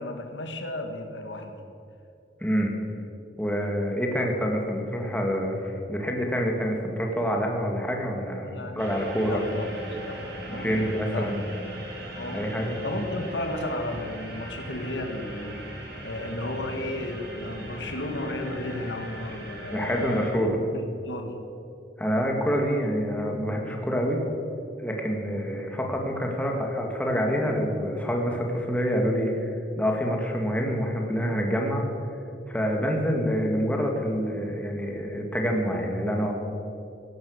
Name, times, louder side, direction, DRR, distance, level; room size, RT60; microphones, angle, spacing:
voice 1, 0.0-1.6 8.4-8.8 9.2-11.3 12.2-21.4, left 1 dB, 85° left, 4 dB, 1.8 m, -34 dB
voice 2, 2.4-2.7 3.4-9.4 10.5-11.4 12.3-12.8 19.7-20.6 22.0-24.2 24.8-31.9 32.5-36.3, equal, 10° left, 1 dB, 2.0 m, -27 dB
sound 1, 8.8-20.3, right 1 dB, 65° right, 3.3 m, -40 dB
16.5 x 12.0 x 6.6 m, 2.7 s
head